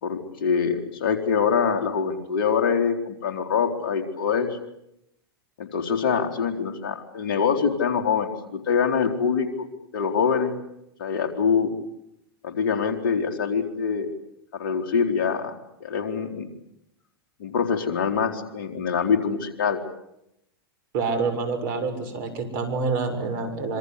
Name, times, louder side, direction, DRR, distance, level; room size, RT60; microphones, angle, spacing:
voice 1, 0.0-4.6 5.6-9.5 9.9-10.5 11.0-11.7 12.4-14.1 14.5-15.5 15.8-16.5 17.4-19.8, left 6 dB, 60° left, 6 dB, 4.1 m, -24 dB
voice 2, 20.9-23.8, right 4 dB, 55° right, 9 dB, 6.9 m, -27 dB
26.5 x 25.5 x 8.4 m, 0.82 s
hypercardioid pair, 95°, 13 cm